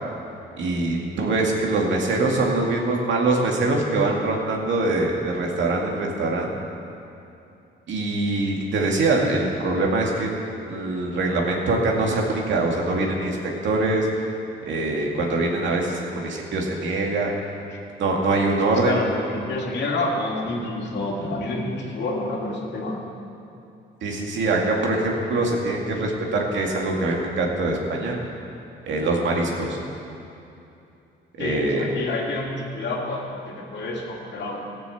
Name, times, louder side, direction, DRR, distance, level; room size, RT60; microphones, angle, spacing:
voice 1, 0.6-6.5 7.9-10.4 10.7-13.4 13.6-14.1 14.6-17.3 18.0-18.9 24.0-28.2 28.9-29.8 31.4-31.8, right 2 dB, 70° right, -1 dB, 2.3 m, -23 dB
voice 2, 18.8-23.0 31.4-34.6, left 2 dB, 60° left, -1 dB, 2.3 m, -28 dB
15.5 x 6.9 x 7.2 m, 2.7 s
cardioid pair, 90°, 20 cm